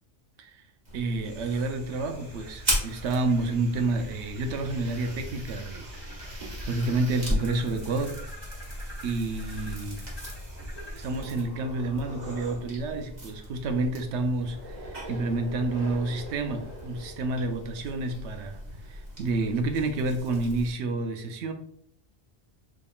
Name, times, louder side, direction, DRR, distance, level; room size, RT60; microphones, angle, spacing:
sound 1, 0.8-20.7, equal, 40° right, 1.2 m, -38 dB
voice 1, 0.9-8.2 9.0-10.0 10.9-21.5, right 2 dB, 85° right, 6 dB, 0.9 m, -29 dB
sound 2, 1.2-11.2, equal, 25° right, 1.5 m, -46 dB
3.6 x 3.5 x 2.2 m, 0.67 s
omnidirectional pair, 1.1 m